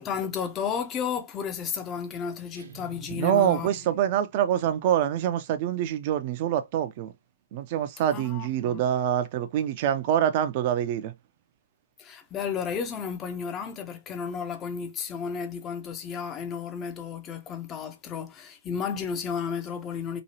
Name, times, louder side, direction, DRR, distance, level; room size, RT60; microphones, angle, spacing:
voice 1, 0.0-3.7 8.1-8.8 12.0-20.2, left 7 dB, 25° left, 0.6 m, -33 dB
sound 1, 2.5-4.6, right 9 dB, 65° right, 0.8 m, -48 dB
voice 2, 3.2-7.1 7.5-11.1, right 10 dB, 40° right, 0.5 m, -25 dB
3.0 x 2.3 x 2.8 m
hypercardioid pair, 130°, 0 cm